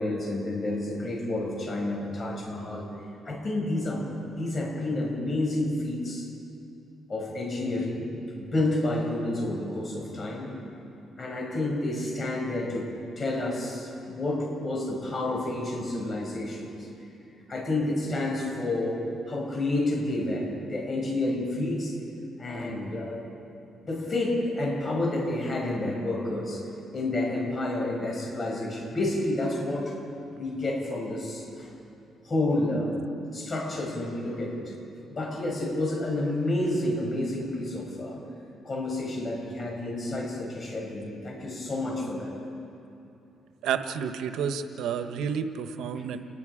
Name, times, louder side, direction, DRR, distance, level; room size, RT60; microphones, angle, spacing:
voice 1, 0.0-2.9 3.3-4.0 4.3-6.3 7.1-8.1 8.3-10.5 11.2-12.9 13.2-16.9 17.5-21.9 22.4-23.2 23.9-29.9 30.3-31.7 32.2-33.0 33.3-34.6 35.1-38.2 38.6-42.3 45.9-46.0, left 2 dB, 35° left, -1 dB, 7.2 m, -29 dB
voice 2, 43.6-46.3, right 7 dB, 85° right, 8 dB, 1.1 m, -30 dB
29.5 x 21.0 x 5.0 m, 2.7 s
cardioid pair, 90°, 0 cm